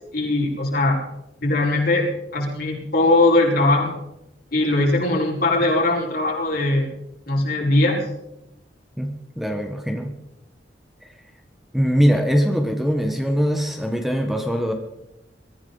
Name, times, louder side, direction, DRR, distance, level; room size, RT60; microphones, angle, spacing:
voice 1, 0.1-1.0 1.4-2.1 2.3-3.9 4.5-6.9 7.3-8.1, left 2 dB, 60° left, -2 dB, 5.0 m, -20 dB
voice 2, 9.0-10.1 11.0-11.1 11.7-14.7, equal, ahead, 4 dB, 1.4 m, -22 dB
23.0 x 14.5 x 4.0 m, 0.88 s
head